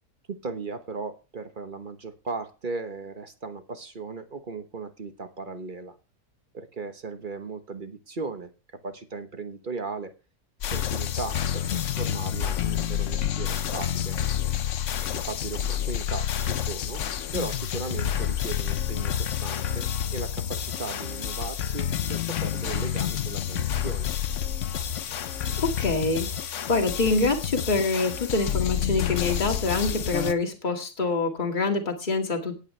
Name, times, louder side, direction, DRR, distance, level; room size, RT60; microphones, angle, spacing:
voice 1, 0.3-6.0 6.5-8.5 8.8-10.1 10.7-14.2 15.2-17.0 17.3-24.1, right 4 dB, 35° right, 8 dB, 1.1 m, -37 dB
sound 1, 10.6-30.3, left 10 dB, 60° left, 1.0 m, -29 dB
voice 2, 25.6-32.6, left 3 dB, 30° left, 2 dB, 2.2 m, -26 dB
17.5 x 9.0 x 3.3 m, 0.32 s
omnidirectional pair, 1.7 m